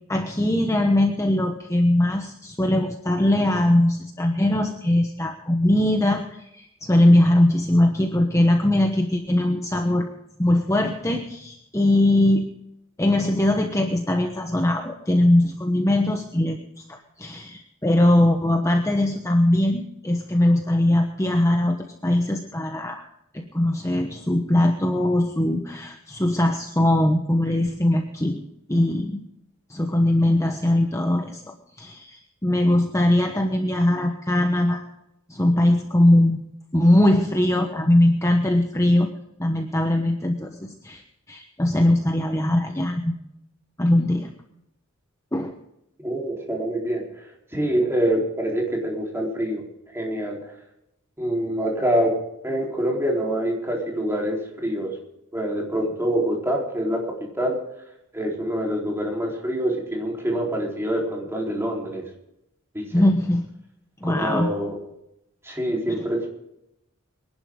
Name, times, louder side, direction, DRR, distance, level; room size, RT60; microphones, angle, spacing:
voice 1, 0.1-10.1 10.4-12.4 13.0-16.6 16.9-23.1 23.3-28.4 28.7-29.2 29.7-34.8 35.3-36.4 36.7-39.1 39.4-41.0 41.3-43.2 43.8-44.3 45.3-45.5 62.9-63.4 64.0-64.5, left 1 dB, 15° left, 3 dB, 1.1 m, -21 dB
voice 2, 46.0-49.6 49.9-50.5 51.2-52.2 52.4-54.9 55.3-57.6 58.1-62.0 62.7-63.0 64.0-64.8 65.4-66.3, right 1 dB, 10° right, -1 dB, 4.0 m, -25 dB
25.0 x 11.5 x 3.8 m, 0.82 s
head